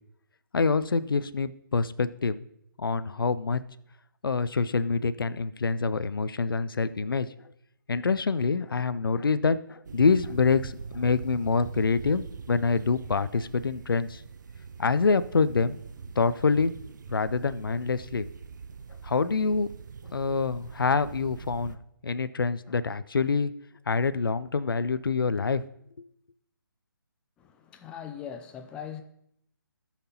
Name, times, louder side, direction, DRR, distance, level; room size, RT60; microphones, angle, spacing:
voice 1, 0.5-2.4 2.8-3.6 4.2-7.3 7.9-14.2 14.8-15.8 16.2-16.8 17.1-18.2 19.0-19.7 20.1-21.8 22.0-23.5 23.9-25.6, left 4 dB, 75° left, 0.5 m, -26 dB
sound 1, 9.8-21.8, right 6 dB, 55° right, 0.5 m, -42 dB
voice 2, 27.4-29.0, left 8 dB, 10° left, 0.4 m, -40 dB
17.5 x 5.8 x 2.8 m
figure-of-eight pair, 145°, 12 cm